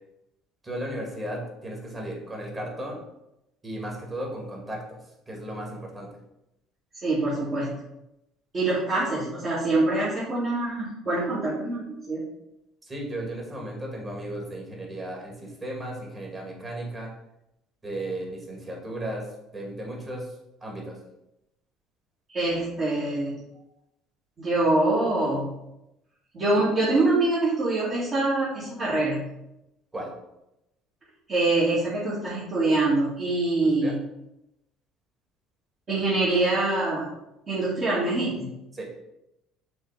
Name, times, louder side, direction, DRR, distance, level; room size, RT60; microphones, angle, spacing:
voice 1, 0.6-3.0 3.6-5.0 5.3-6.1 12.8-17.1 17.8-19.2 19.5-20.3 20.6-21.0 29.9-30.1 33.8-33.9 38.7-38.9, right 1 dB, 25° right, -1 dB, 2.4 m, -35 dB
voice 2, 7.0-7.8 8.5-12.2 22.3-23.4 24.4-25.6 26.3-29.3 31.3-34.0 35.9-37.1 37.5-38.5, right 2 dB, 40° right, -10 dB, 2.4 m, -24 dB
6.3 x 3.3 x 5.1 m, 0.88 s
supercardioid pair, 100°, 0 cm